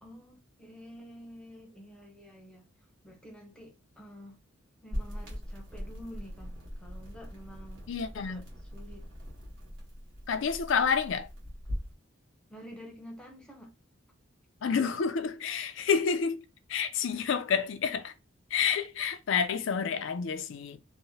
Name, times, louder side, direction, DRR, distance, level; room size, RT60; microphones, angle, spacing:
voice 1, 0.0-2.7 3.0-4.4 4.8-7.9 8.1-9.1 12.5-13.7, equal, 5° left, 0.6 m, -49 dB
sound 1, 4.9-11.9, equal, 65° right, 1.2 m, -41 dB
voice 2, 7.9-8.4 10.3-11.3 14.6-18.1 18.5-20.8, left 6 dB, 60° left, 0.4 m, -29 dB
2.8 x 2.0 x 2.7 m
head